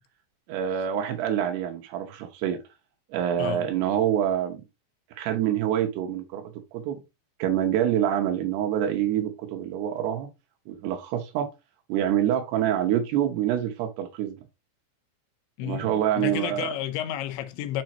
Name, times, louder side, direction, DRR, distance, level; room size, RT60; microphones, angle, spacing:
voice 1, 0.5-2.6 3.1-4.6 5.2-7.0 7.4-10.3 10.7-11.5 11.9-14.4 15.6-16.7, right 10 dB, 75° right, 2.8 m, -26 dB
voice 2, 3.4-3.7 15.6-17.8, left 11 dB, 85° left, 3.2 m, -31 dB
7.5 x 5.1 x 2.9 m
omnidirectional pair, 5.1 m